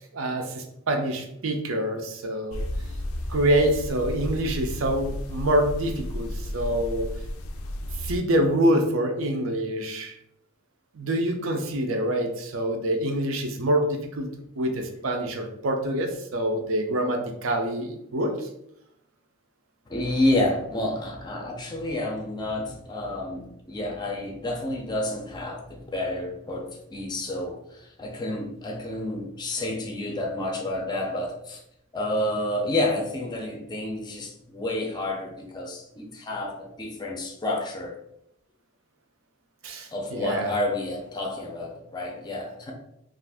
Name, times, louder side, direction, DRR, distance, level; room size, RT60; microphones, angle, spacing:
voice 1, 0.1-2.6 3.3-7.1 8.0-10.2 10.9-14.3 14.6-18.5 39.6-40.5, right 1 dB, 70° right, 5 dB, 0.5 m, -26 dB
sound 1, 2.5-8.2, left 1 dB, 90° left, 0.4 m, -33 dB
voice 2, 19.9-31.6 31.9-38.0 39.9-42.7, left 1 dB, 20° left, 1 dB, 0.4 m, -29 dB
2.5 x 2.5 x 3.4 m, 0.78 s
head